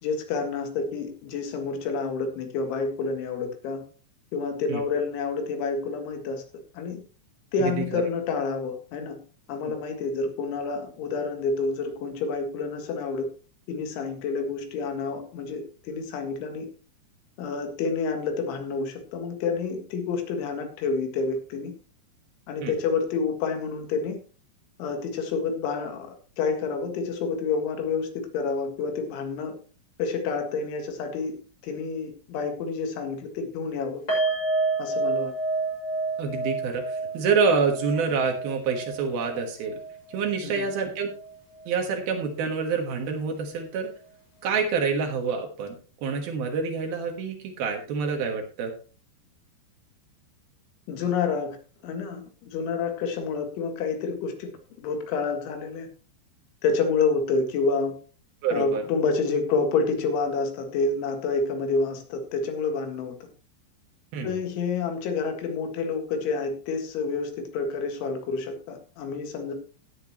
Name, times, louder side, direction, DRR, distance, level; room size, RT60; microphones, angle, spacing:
voice 1, 0.0-3.8 4.3-6.4 6.7-7.0 7.5-9.2 9.5-13.3 13.7-16.7 17.4-21.7 22.5-24.2 24.8-29.5 30.0-31.4 31.6-34.0 34.8-35.3 40.4-40.7 50.9-51.6 51.8-54.5 54.8-55.9 56.6-58.0 58.5-63.2 64.2-69.5, left 4 dB, 85° left, 5 dB, 4.1 m, -28 dB
voice 2, 7.6-8.0 22.6-22.7 36.2-39.8 40.1-41.1 41.7-43.9 44.4-48.7 58.4-58.8 64.1-64.4, right 5 dB, 65° right, 3 dB, 2.9 m, -27 dB
sound 1, 34.1-41.3 41.5-41.7 42.1-42.2, right 3 dB, 15° left, 5.6 m, -30 dB
16.0 x 9.1 x 3.0 m, 0.37 s
omnidirectional pair, 5.3 m